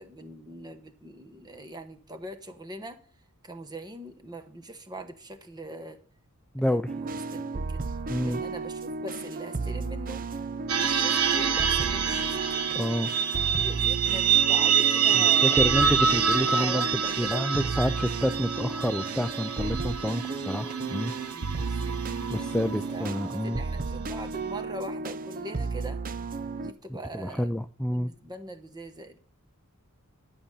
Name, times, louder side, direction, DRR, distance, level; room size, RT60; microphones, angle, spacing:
voice 1, 0.0-3.0 3.4-6.0 6.6-7.8 8.2-10.3 10.8-12.4 13.5-15.6 16.4-17.5 21.3-22.0 22.9-26.0 26.6-27.5 27.9-29.2, right 1 dB, 20° right, 1.2 m, -41 dB
voice 2, 6.5-6.9 8.1-8.4 12.7-13.1 15.1-16.8 17.2-21.1 22.3-23.6 27.1-28.1, equal, 5° left, 0.4 m, -28 dB
beat snickers, 6.9-26.7, right 3 dB, 40° right, 0.6 m, -34 dB
sound 1, 10.7-23.2, right 7 dB, 85° right, 1.4 m, -26 dB
11.5 x 6.6 x 5.6 m
head